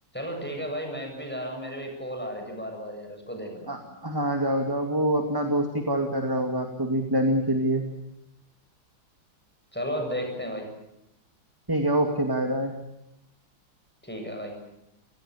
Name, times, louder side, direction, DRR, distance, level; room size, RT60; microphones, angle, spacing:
voice 1, 0.1-3.8 9.7-10.7 14.0-14.5, equal, 5° left, 3 dB, 7.8 m, -34 dB
voice 2, 3.7-7.9 11.7-12.8, right 1 dB, 10° right, 4 dB, 2.3 m, -25 dB
29.5 x 18.0 x 8.6 m, 0.86 s
omnidirectional pair, 2.3 m